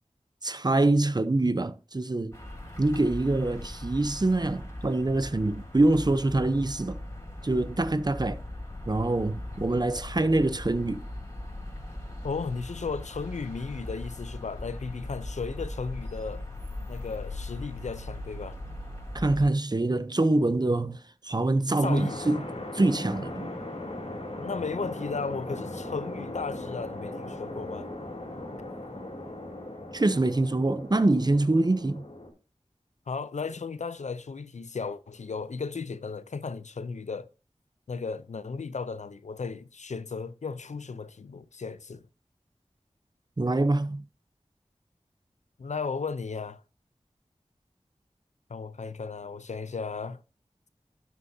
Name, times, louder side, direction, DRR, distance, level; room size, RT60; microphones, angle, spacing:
voice 1, 0.4-2.4 2.8-7.0 7.4-8.4 8.9-11.0 19.1-21.0 21.2-22.4 22.7-23.5 29.9-32.0 43.4-44.0, right 2 dB, 35° right, 0.7 m, -25 dB
sound 1, 2.3-19.5, left 1 dB, 25° left, 5.2 m, -39 dB
voice 2, 12.2-16.5 16.9-18.6 21.8-22.2 24.4-27.9 33.1-37.3 37.9-42.0 45.6-46.6 48.5-50.2, left 4 dB, 80° left, 0.6 m, -35 dB
sound 2, 21.8-32.3, left 1 dB, 60° left, 3.4 m, -38 dB
12.0 x 7.4 x 2.7 m
wide cardioid pair, 45°, 12 cm